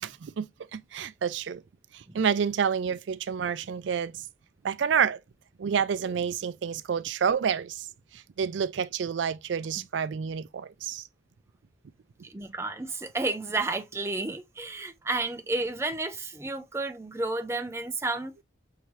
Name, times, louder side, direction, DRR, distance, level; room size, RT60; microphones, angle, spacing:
voice 1, 0.0-1.6 1.9-4.3 4.6-5.2 5.6-7.9 8.1-11.0, right 7 dB, 80° right, 0.4 m, -29 dB
voice 2, 12.2-18.3, right 2 dB, 15° right, 0.5 m, -31 dB
5.7 x 2.8 x 3.1 m
head